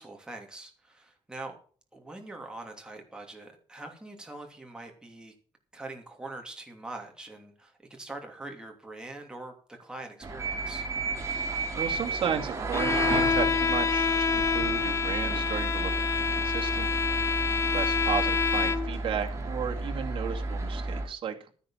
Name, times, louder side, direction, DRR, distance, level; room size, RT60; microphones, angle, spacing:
voice 1, 0.0-1.6 1.9-5.3 5.7-10.9 19.7-20.0, right 2 dB, 10° right, 2 dB, 2.8 m, -43 dB
sound 1, 10.2-21.1, right 3 dB, 30° right, 2.9 m, -33 dB
voice 2, 11.7-15.9 16.2-17.4 17.7-21.3, right 7 dB, 55° right, 2 dB, 2.3 m, -34 dB
Bowed string instrument, 12.7-19.0, left 5 dB, 30° left, 0.7 m, -27 dB
13.0 x 9.8 x 5.8 m, 0.42 s
cardioid pair, 150°, 10 cm